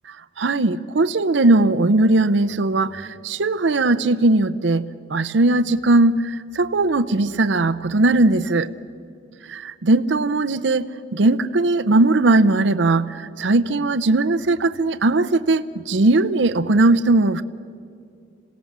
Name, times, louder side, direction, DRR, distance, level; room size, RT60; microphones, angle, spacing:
voice 1, 0.4-4.8 5.1-8.7 9.5-17.4, right 2 dB, 80° right, 12 dB, 0.7 m, -19 dB
27.0 x 17.5 x 7.3 m, 2.4 s
head